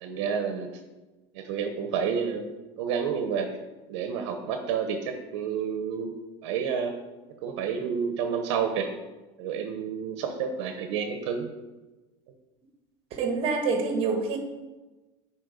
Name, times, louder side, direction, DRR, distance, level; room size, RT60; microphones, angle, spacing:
voice 1, 0.0-0.7 1.3-2.4 2.8-3.5 3.9-6.1 6.4-6.9 7.4-8.9 9.4-11.5, right 7 dB, 80° right, 5 dB, 1.0 m, -29 dB
voice 2, 13.1-14.4, right 4 dB, 40° right, 4 dB, 1.5 m, -26 dB
9.0 x 4.5 x 5.3 m, 1.1 s
cardioid pair, 155°, 14 cm